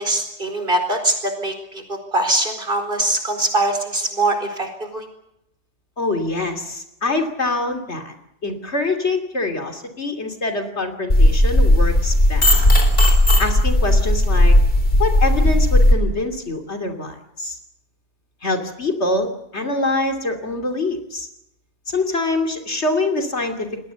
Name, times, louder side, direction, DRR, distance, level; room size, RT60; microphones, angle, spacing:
voice 1, 0.0-5.1, right 2 dB, 50° right, 6 dB, 4.7 m, -22 dB
voice 2, 6.0-8.1 8.4-12.6 13.4-14.5 15.0-17.6 18.4-21.3 21.9-23.7, left 2 dB, 70° left, 5 dB, 3.2 m, -24 dB
sound 1, 11.1-15.9, left 1 dB, 50° left, 4.2 m, -15 dB
28.5 x 21.0 x 7.0 m, 0.79 s
omnidirectional pair, 1.2 m